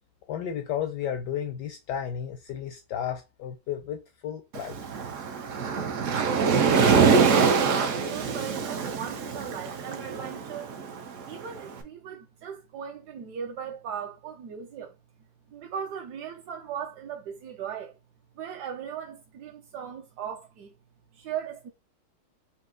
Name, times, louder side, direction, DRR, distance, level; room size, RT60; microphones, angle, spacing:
voice 1, 0.3-4.8, left 9 dB, 75° left, 1.0 m, -33 dB
Waves surf, 4.5-11.7, right 5 dB, 85° right, 0.6 m, -24 dB
voice 2, 6.1-10.8 11.3-14.9 15.5-18.0 18.4-20.7 21.1-21.7, right 8 dB, 70° right, 1.0 m, -38 dB
4.3 x 2.7 x 3.7 m
omnidirectional pair, 2.3 m